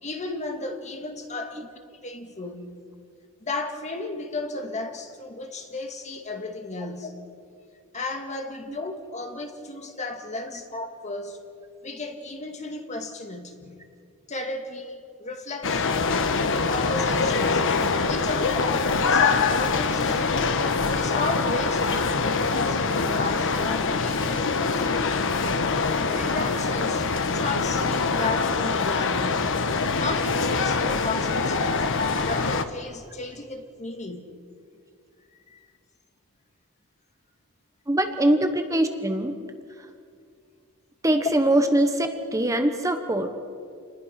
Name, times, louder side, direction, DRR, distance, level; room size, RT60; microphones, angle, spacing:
voice 1, 0.0-1.7 2.0-2.8 3.4-7.2 7.9-11.4 11.8-13.8 14.3-16.0 16.7-17.8 18.0-20.3 20.9-25.3 26.2-29.4 29.9-31.9 32.3-34.3 35.3-35.7, left 2 dB, 30° left, 1.9 m, -34 dB
sound 1, 15.6-32.6, left 4 dB, 60° left, 1.2 m, -24 dB
voice 2, 37.9-39.4 39.8-39.9 41.0-43.3, right 1 dB, 15° right, 1.2 m, -23 dB
28.5 x 20.5 x 5.9 m
head